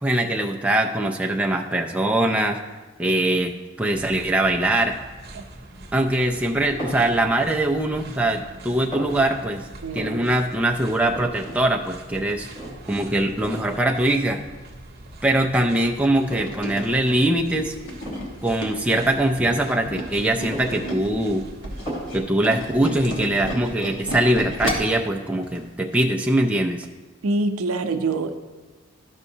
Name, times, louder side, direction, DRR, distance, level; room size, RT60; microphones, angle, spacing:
voice 1, 0.0-2.6 3.0-4.9 5.9-9.7 9.9-12.5 12.9-14.4 15.2-17.8 18.4-21.5 22.1-26.9, right 1 dB, 5° right, 1 dB, 0.3 m, -22 dB
sound 1, 3.9-22.2, right 1 dB, 45° right, 0.8 m, -43 dB
sound 2, 6.8-7.1 7.6-8.3 8.6-9.2 9.9-10.3 10.6-10.7 10.9-11.6 11.9-12.0 12.5-13.0 13.5-13.8 14.6-14.7 15.3-16.6 17.0-17.2 18.0-18.4 19.3-20.0 20.3-21.4 21.9-22.2, equal, 25° left, 2.4 m, -35 dB
voice 2, 9.8-10.3 27.2-28.3, right 3 dB, 90° right, 8 dB, 0.6 m, -25 dB
Tools, 16.2-21.1 21.5-25.0 25.4-25.6 25.9-26.0, equal, 60° left, 1.3 m, -32 dB
12.5 x 5.4 x 2.7 m, 1.3 s
head